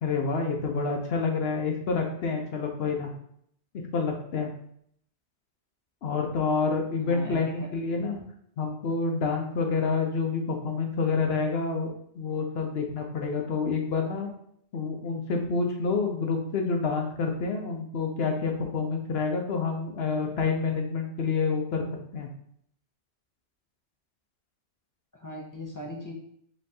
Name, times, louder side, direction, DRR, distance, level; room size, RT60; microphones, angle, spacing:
voice 1, 0.0-3.1 3.9-4.5 6.0-8.2 8.6-14.3 14.7-21.8 22.1-22.3, left 4 dB, 65° left, 2 dB, 0.9 m, -28 dB
voice 2, 7.0-7.7 25.1-26.1, left 1 dB, 25° left, -1 dB, 0.5 m, -39 dB
5.4 x 3.1 x 2.8 m, 0.68 s
omnidirectional pair, 1.2 m